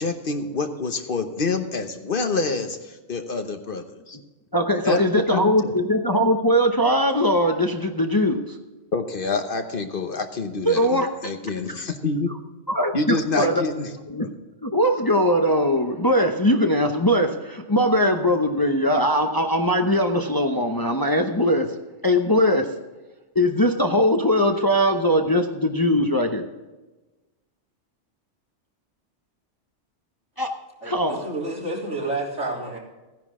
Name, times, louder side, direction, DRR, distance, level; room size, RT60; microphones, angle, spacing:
voice 1, 0.0-4.2 4.8-5.0 5.3-5.7 8.9-12.3 12.9-13.9 14.2-14.3, left 3 dB, 50° left, 7 dB, 1.1 m, -27 dB
voice 2, 4.5-8.6 10.7-11.1 12.7-13.6 14.1-14.3 14.6-21.7 22.0-22.7 23.3-26.4 30.4-30.5 30.8-31.2, equal, 20° left, 4 dB, 0.7 m, -20 dB
voice 3, 30.8-32.8, right 2 dB, 80° right, -4 dB, 3.8 m, -29 dB
15.5 x 10.5 x 3.7 m, 1.1 s
omnidirectional pair, 1.2 m